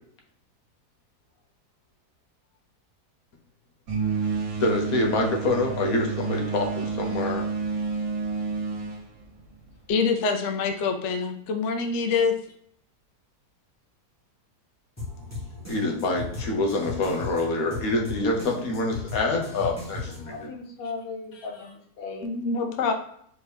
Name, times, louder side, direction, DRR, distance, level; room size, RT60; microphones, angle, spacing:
sound 1, 3.9-9.9, right 5 dB, 85° right, 1.6 m, -30 dB
voice 1, 4.6-7.5 15.7-20.4, left 2 dB, 65° left, 1 dB, 1.2 m, -26 dB
voice 2, 9.9-12.3 22.2-22.9, left 5 dB, 80° left, 5 dB, 0.6 m, -25 dB
sound 2, 15.0-20.5, left 3 dB, 10° left, 1.2 m, -37 dB
voice 3, 20.2-22.3 22.8-22.9, left 4 dB, 45° left, 1 dB, 0.8 m, -38 dB
4.4 x 2.8 x 3.4 m, 0.67 s
omnidirectional pair, 1.8 m